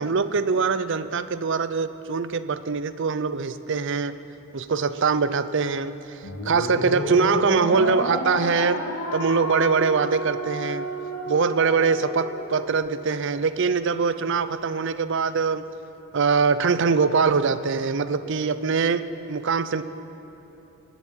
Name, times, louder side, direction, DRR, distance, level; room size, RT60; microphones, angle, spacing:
voice 1, 0.0-4.1 4.5-6.2 6.4-10.8 11.3-15.6 16.1-19.8, right 5 dB, 55° right, 13 dB, 0.5 m, -23 dB
sound 1, 6.2-12.7, left 1 dB, 85° left, 2.6 m, -31 dB
19.5 x 8.2 x 8.8 m, 3.0 s
head